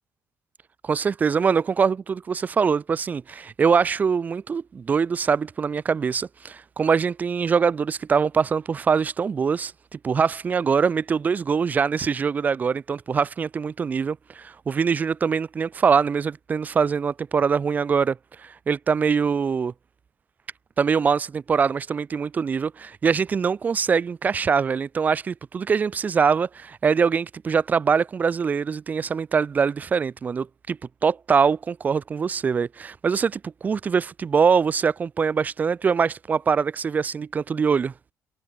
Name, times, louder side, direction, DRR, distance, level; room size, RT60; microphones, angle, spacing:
voice 1, 0.8-19.7 20.8-37.9, right 6 dB, 25° right, 2.0 m, -23 dB
cardioid pair, 175°, 6 cm